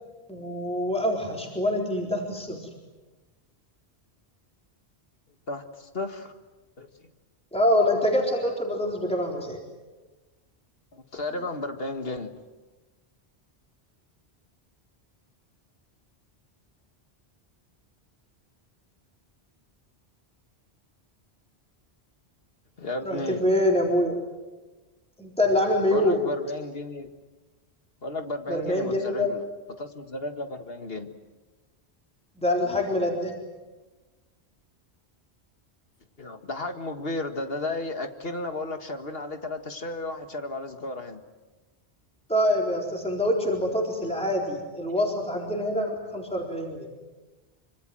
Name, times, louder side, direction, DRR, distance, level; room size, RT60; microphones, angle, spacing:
voice 1, 0.3-2.7 7.5-9.6 23.0-24.2 25.2-26.2 28.5-29.3 32.4-33.3 42.3-46.9, left 1 dB, 5° left, -1 dB, 3.9 m, -25 dB
voice 2, 5.5-6.3 6.8-7.1 10.9-12.4 22.8-23.4 25.9-27.1 28.0-29.4 29.8-31.1 36.2-41.2, left 2 dB, 60° left, 6 dB, 2.0 m, -33 dB
25.5 x 25.5 x 7.7 m, 1.2 s
omnidirectional pair, 1.1 m